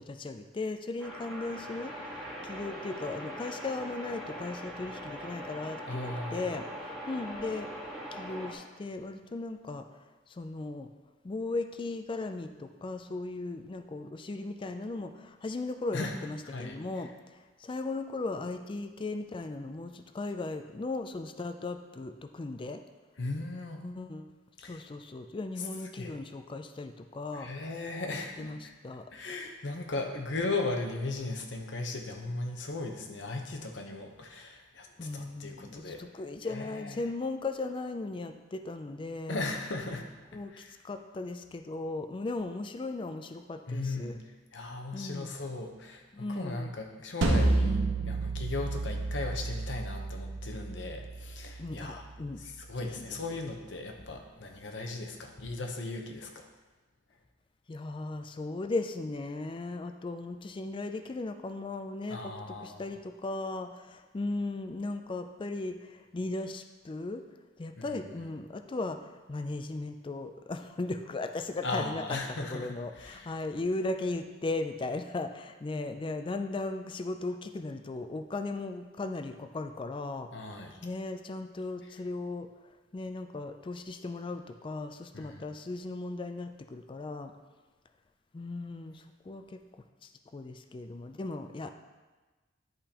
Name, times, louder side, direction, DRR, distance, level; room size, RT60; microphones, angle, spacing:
voice 1, 0.0-6.7 7.1-7.7 8.1-9.8 10.3-10.9 11.2-22.8 23.8-24.3 24.6-27.5 28.4-29.1 35.0-39.4 40.3-44.2 44.9-45.3 46.1-46.8 51.6-52.4 52.8-53.2 57.7-62.3 62.6-67.2 67.6-72.0 72.5-80.3 80.8-82.5 82.9-87.3 88.3-89.6 90.0-91.7, left 2 dB, 25° left, 7 dB, 0.4 m, -37 dB
sound 1, 1.0-8.5, equal, ahead, 1.5 m, -41 dB
voice 2, 5.9-6.5 15.9-16.1 16.4-16.8 23.2-23.8 24.6-24.8 25.6-25.7 25.9-26.1 27.3-28.7 29.1-36.0 36.4-37.1 39.3-40.0 40.5-40.7 43.7-44.1 44.5-46.0 46.3-52.0 52.4-56.5 62.1-63.0 67.8-68.0 68.2-68.3 71.6-73.3 80.3-80.8 85.1-85.5, left 2 dB, 75° left, 3 dB, 0.9 m, -37 dB
sound 2, 47.2-52.3, right 2 dB, 75° right, 0.8 m, -31 dB
10.5 x 5.1 x 2.9 m, 1.3 s
head